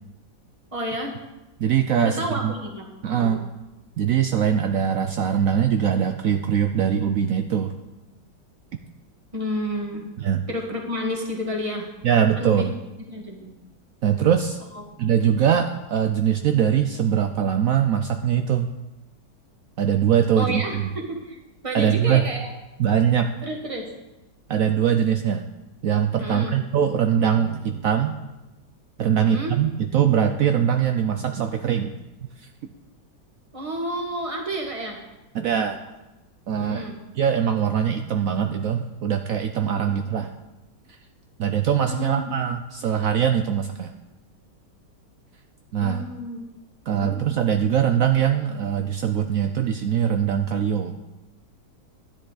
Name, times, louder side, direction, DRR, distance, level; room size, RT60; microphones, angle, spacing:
voice 1, 0.7-1.1 2.0-3.3 9.3-10.1 10.5-11.9 12.4-12.7 13.1-13.5 14.7-14.9 20.4-21.4 21.6-22.5 23.4-23.9 26.2-26.6 29.1-29.6 33.5-35.0 36.6-37.0 39.8-39.9 41.8-42.3 45.8-46.4 46.9-47.2, equal, 20° right, 1 dB, 1.6 m, -30 dB
voice 2, 1.6-2.5 3.0-3.5 4.0-7.7 10.2-10.4 12.0-12.7 14.0-14.6 15.0-18.7 19.8-20.9 21.7-22.3 22.8-23.3 24.5-25.4 25.8-28.2 29.0-31.9 32.4-32.5 35.3-35.8 36.5-36.9 37.1-40.3 41.4-43.9 45.7-46.0 46.9-50.9, right 8 dB, 70° right, 7 dB, 0.8 m, -22 dB
12.5 x 10.0 x 4.0 m, 1.0 s
omnidirectional pair, 1.9 m